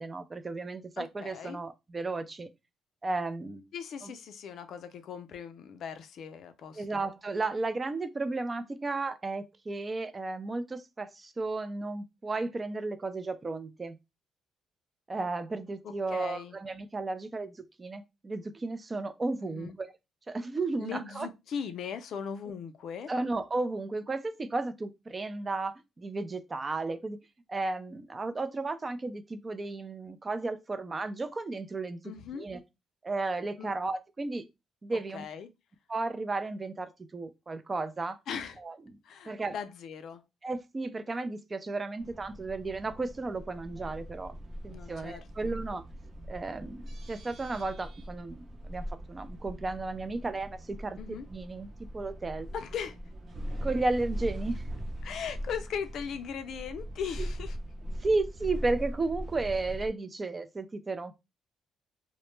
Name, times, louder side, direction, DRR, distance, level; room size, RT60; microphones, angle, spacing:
voice 1, 0.0-2.5 3.0-3.6 4.0-4.1 6.7-14.0 15.1-19.9 20.3-21.3 23.1-27.2 27.5-32.6 33.0-34.4 34.8-35.2 35.9-38.2 38.6-39.0 39.3-39.6 40.4-44.3 44.6-45.8 46.3-51.0 51.3-51.7 51.9-52.5 53.6-54.7 58.0-61.1, right 3 dB, 30° right, 0.3 m, -34 dB
voice 2, 1.0-1.6 3.7-7.0 15.8-16.6 19.4-19.8 20.8-23.1 32.0-32.5 33.6-33.7 35.1-35.5 38.3-38.6 39.0-40.2 44.7-45.5 51.0-51.3 52.5-53.0 55.0-57.6, left 7 dB, 70° left, 0.3 m, -39 dB
sound 1, 42.0-59.9, equal, 50° right, 0.7 m, -41 dB
2.1 x 2.0 x 3.1 m
cardioid pair, 90°, 0 cm